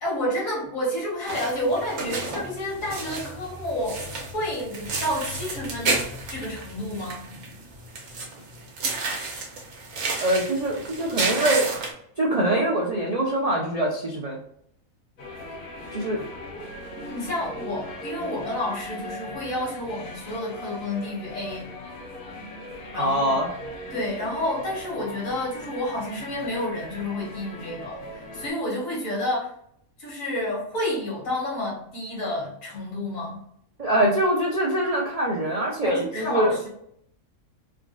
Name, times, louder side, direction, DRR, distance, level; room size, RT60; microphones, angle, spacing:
voice 1, 0.0-6.0 6.3-7.2 17.1-21.7 22.9-23.4 23.9-29.5 30.0-33.4 35.8-36.7, left 1 dB, 65° left, -4 dB, 1.7 m, -30 dB
sound 1, 1.3-11.9, right 3 dB, 80° right, 1.2 m, -31 dB
voice 2, 10.2-11.7 12.2-14.4 15.9-16.2 22.9-23.5 33.8-36.5, right 1 dB, 50° right, -3 dB, 0.4 m, -23 dB
sound 2, 15.2-28.5, left 1 dB, 50° left, 0.7 m, -39 dB
3.6 x 2.3 x 2.4 m, 0.70 s
omnidirectional pair, 1.5 m